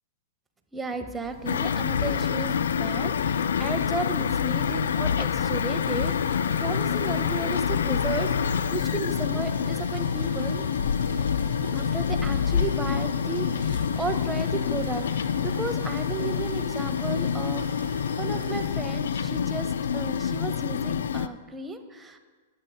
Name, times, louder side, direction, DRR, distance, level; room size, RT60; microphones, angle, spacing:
voice 1, 0.7-10.7 11.6-22.2, right 3 dB, 10° right, 7 dB, 0.7 m, -34 dB
sound 1, 1.2-13.0, equal, 20° left, 2.5 m, -45 dB
sound 2, 1.5-21.3, left 7 dB, 65° left, 0.3 m, -27 dB
sound 3, 5.8-18.7, right 5 dB, 65° right, 0.8 m, -45 dB
16.0 x 7.7 x 2.3 m, 1.4 s
figure-of-eight pair, 105°, 0 cm